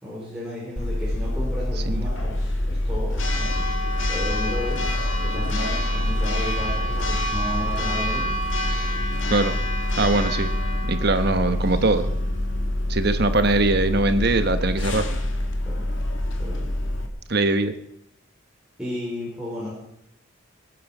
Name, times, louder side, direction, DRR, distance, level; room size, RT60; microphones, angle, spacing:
voice 1, 0.0-3.6 4.1-4.8 5.2-8.3 15.7-15.8 16.4-16.7 18.8-19.7, left 1 dB, 5° right, -8 dB, 5.0 m, -33 dB
Church bell, 0.8-17.1, left 1 dB, 70° left, 2.1 m, -25 dB
voice 2, 10.0-10.5 10.9-12.1 12.9-15.1 17.3-17.7, right 2 dB, 50° right, 10 dB, 1.2 m, -21 dB
22.5 x 9.5 x 6.1 m, 0.79 s
head